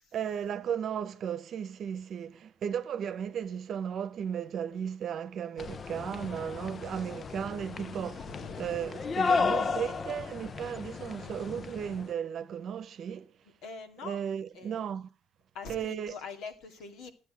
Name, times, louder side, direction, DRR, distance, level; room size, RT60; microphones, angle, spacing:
voice 1, 0.1-8.3 8.6-13.2 14.0-15.1 15.7-16.2, right 8 dB, 50° right, 0.9 m, -35 dB
sound 1, 5.6-12.1, left 5 dB, 35° left, 0.5 m, -34 dB
voice 2, 8.2-8.9 13.4-14.2 14.5-14.8 15.5-17.1, left 5 dB, 75° left, 2.3 m, -44 dB
12.5 x 9.1 x 6.2 m
cardioid pair, 130°, 0 cm